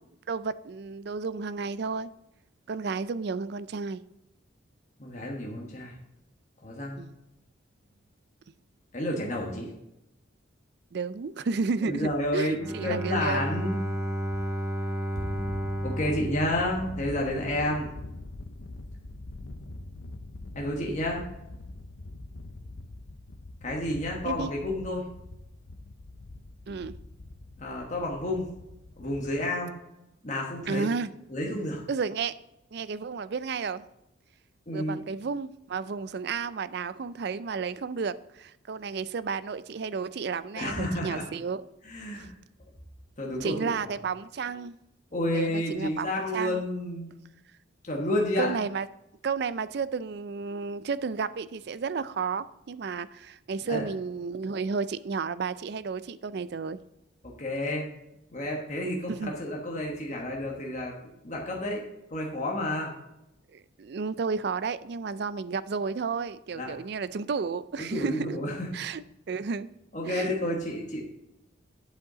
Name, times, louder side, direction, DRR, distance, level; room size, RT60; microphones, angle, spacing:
voice 1, 0.3-2.1 2.7-4.0 7.0-7.2 10.9-13.4 17.7-17.8 24.2-24.5 26.7-26.9 30.7-31.1 31.9-32.3 32.7-33.8 34.7-41.7 42.1-42.3 43.4-44.8 45.3-46.1 46.3-46.6 48.4-48.9 49.2-56.8 59.1-59.3 63.5-68.4 68.7-69.0 69.3-69.7 70.1-70.4, right 5 dB, 55° right, 15 dB, 0.4 m, -32 dB
voice 2, 5.0-5.9 6.6-7.0 8.9-9.7 11.8-13.8 15.1-15.2 15.8-17.9 20.5-21.3 23.6-25.1 27.6-28.5 29.0-29.7 30.2-30.9 31.3-31.8 34.7-35.0 40.5-41.3 41.8-42.3 43.2-43.7 45.1-47.1 47.8-48.5 53.7-53.8 57.2-57.9 58.3-60.9 61.2-62.9 66.5-66.7 67.8-68.7 69.9-71.0, left 1 dB, 35° left, -1 dB, 1.4 m, -30 dB
Bowed string instrument, 12.5-17.5, right 1 dB, 15° right, 0.7 m, -32 dB
Thunder, 15.2-29.4, left 2 dB, 75° left, 0.6 m, -43 dB
8.1 x 8.1 x 3.9 m, 0.88 s
head